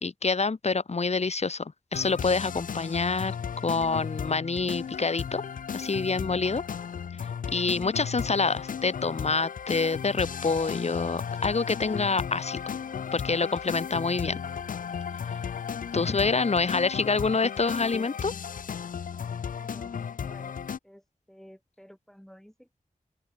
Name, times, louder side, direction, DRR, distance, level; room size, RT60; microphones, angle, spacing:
voice 1, 0.0-3.3 3.6-5.4 5.7-6.6 7.5-12.6 13.1-14.4 15.9-18.3, left 4 dB, 45° left, 0.9 m, -27 dB
sound 1, 1.9-20.8, left 7 dB, 65° left, 0.4 m, -35 dB
voice 2, 19.6-20.6 20.8-22.8, equal, ahead, 3.2 m, -52 dB
open air
wide cardioid pair, 65°, 15 cm